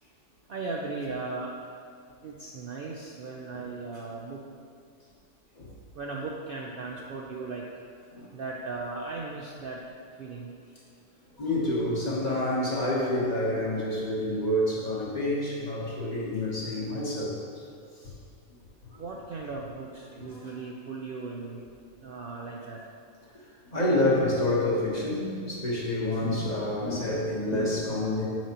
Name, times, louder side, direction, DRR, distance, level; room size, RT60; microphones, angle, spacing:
voice 1, 0.5-1.5 2.2-4.4 5.9-7.7 8.3-9.8 10.2-10.5 19.0-21.6 22.0-22.8, right 3 dB, 60° right, -2 dB, 0.6 m, -37 dB
voice 2, 11.4-17.3 18.9-19.0 20.2-20.4 23.7-28.2, left 1 dB, 35° left, -5 dB, 1.0 m, -28 dB
6.8 x 5.9 x 2.9 m, 2.4 s
omnidirectional pair, 1.4 m